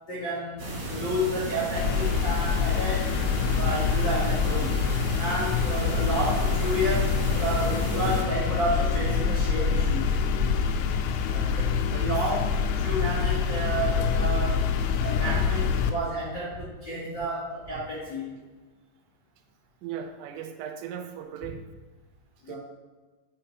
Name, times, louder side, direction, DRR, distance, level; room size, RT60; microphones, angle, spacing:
voice 1, 0.1-3.1 3.5-4.8 5.2-10.1 11.5-14.7 15.0-18.3 22.4-22.6, equal, 65° left, -10 dB, 1.1 m, -31 dB
sound 1, 0.6-8.2, right 1 dB, 55° right, 3.1 m, -33 dB
sound 2, 1.8-15.9, left 6 dB, 85° left, 3.0 m, -26 dB
voice 2, 11.2-12.2 19.8-21.6 22.5-22.6, right 9 dB, 85° right, 6 dB, 3.2 m, -38 dB
8.6 x 5.8 x 3.3 m, 1.3 s
omnidirectional pair, 5.8 m